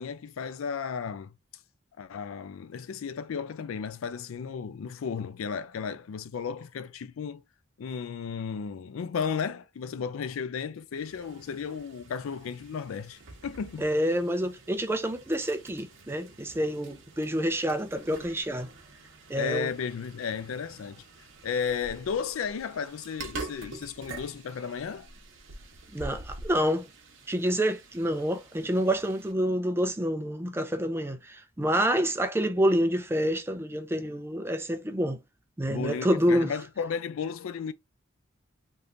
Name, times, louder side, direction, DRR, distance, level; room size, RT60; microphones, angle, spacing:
voice 1, 0.0-1.3 2.0-7.4 7.8-13.9 19.3-21.0 21.4-25.1 35.7-37.7, left 6 dB, 75° left, 0.4 m, -34 dB
sound 1, 11.0-29.3, right 3 dB, 60° right, 0.9 m, -47 dB
voice 2, 13.8-18.7 19.3-19.7 25.9-26.9 27.3-35.2 35.6-36.5, equal, 10° right, 0.5 m, -27 dB
3.5 x 2.8 x 2.5 m
head